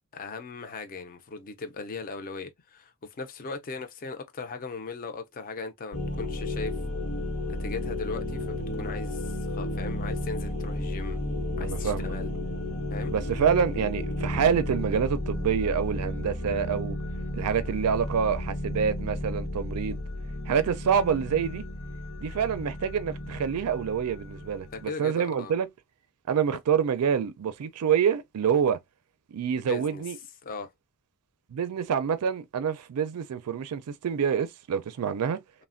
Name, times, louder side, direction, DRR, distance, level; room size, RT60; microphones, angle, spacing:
voice 1, 0.1-6.8 7.5-11.2 11.6-12.3 12.9-13.1 24.7-25.5 29.6-30.0 30.4-30.7, left 4 dB, 40° left, 0.4 m, -38 dB
sound 1, 5.9-24.8, left 1 dB, 90° left, 0.9 m, -33 dB
voice 2, 11.6-12.1 13.1-17.0 17.3-20.0 20.5-21.6 22.2-25.7 26.3-28.8 29.3-30.2 31.5-35.4, right 7 dB, 90° right, 0.4 m, -27 dB
3.2 x 2.1 x 2.4 m
head